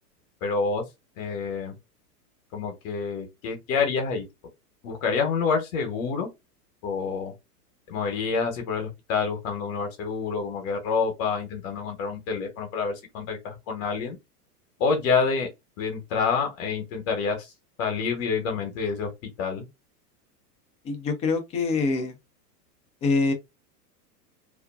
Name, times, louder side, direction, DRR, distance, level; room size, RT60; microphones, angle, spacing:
voice 1, 0.4-0.8 1.2-1.7 2.5-4.3 4.8-6.3 6.8-7.3 7.9-14.2 14.8-15.5 15.8-17.5 17.8-19.7, left 5 dB, 55° left, 0.9 m, -27 dB
voice 2, 20.8-22.1 23.0-23.3, left 3 dB, 15° left, 0.3 m, -24 dB
2.5 x 2.2 x 2.2 m
hypercardioid pair, 100°, 47 cm